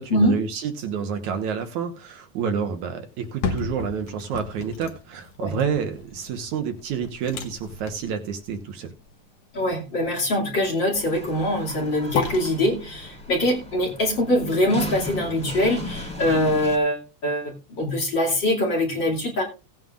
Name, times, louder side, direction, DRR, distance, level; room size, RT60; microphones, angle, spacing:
voice 1, 0.0-8.9, right 7 dB, 70° right, 6 dB, 2.5 m, -29 dB
sound 1, 3.1-15.2 15.6-15.7, left 5 dB, 65° left, 2.6 m, -36 dB
voice 2, 9.5-19.4, left 1 dB, 35° left, 0 dB, 3.0 m, -23 dB
sound 2, 10.9-16.8, left 1 dB, ahead, 2.3 m, -36 dB
17.5 x 9.3 x 2.5 m, 0.30 s
omnidirectional pair, 3.7 m